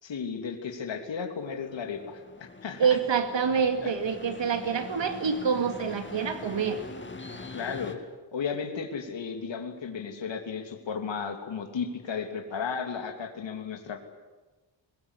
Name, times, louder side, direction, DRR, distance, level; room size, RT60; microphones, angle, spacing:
voice 1, 0.0-3.0 3.8-3.9 7.5-8.0 8.3-14.0, left 6 dB, 65° left, 5 dB, 3.0 m, -34 dB
sound 1, 1.4-7.9, left 3 dB, 25° left, 2.2 m, -43 dB
voice 2, 2.8-6.8, right 6 dB, 65° right, 7 dB, 2.3 m, -26 dB
22.0 x 21.5 x 9.9 m, 1.2 s
wide cardioid pair, 135°, 47 cm